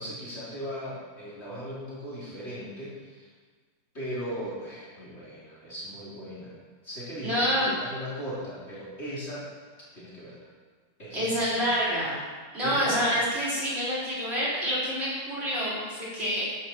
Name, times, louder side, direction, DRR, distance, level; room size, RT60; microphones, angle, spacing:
voice 1, 0.0-3.3 3.9-6.5 6.8-9.4 9.9-10.4 11.0-11.7 12.6-13.2, equal, 30° left, -7 dB, 3.6 m, -38 dB
voice 2, 7.2-7.7 11.1-12.2 12.5-16.5, equal, 30° right, -8 dB, 4.4 m, -27 dB
13.0 x 11.0 x 4.5 m, 1.5 s
omnidirectional pair, 2.1 m